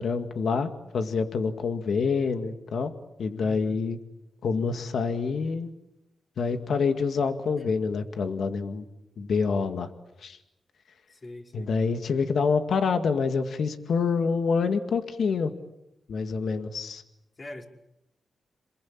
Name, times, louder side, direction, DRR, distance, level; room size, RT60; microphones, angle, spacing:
voice 1, 0.0-2.9 3.2-4.0 4.4-5.7 6.4-8.8 9.2-9.9 10.2-10.4 11.5-15.5 16.1-17.0, left 5 dB, 75° left, 8 dB, 2.0 m, -27 dB
voice 2, 3.4-3.8 7.6-7.8 11.1-11.7 17.4-17.6, left 1 dB, 40° left, 1 dB, 5.4 m, -43 dB
28.5 x 22.0 x 8.8 m, 0.87 s
cardioid pair, 65°, 0 cm